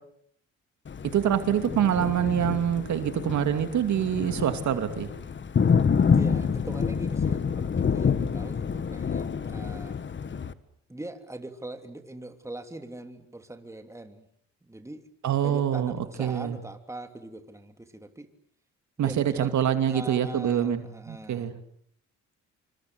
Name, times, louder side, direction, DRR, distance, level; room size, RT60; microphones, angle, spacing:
Thunder, 0.9-10.5, left 6 dB, 40° left, 1.6 m, -27 dB
voice 1, 1.1-5.1 15.2-16.6 19.0-21.5, right 9 dB, 70° right, 8 dB, 2.6 m, -25 dB
voice 2, 6.1-10.0 10.9-14.3 14.6-15.1 15.4-18.3 19.0-19.6 19.9-21.5, right 1 dB, 10° right, 6 dB, 3.1 m, -41 dB
27.5 x 25.0 x 8.0 m, 0.69 s
cardioid pair, 90°, 30 cm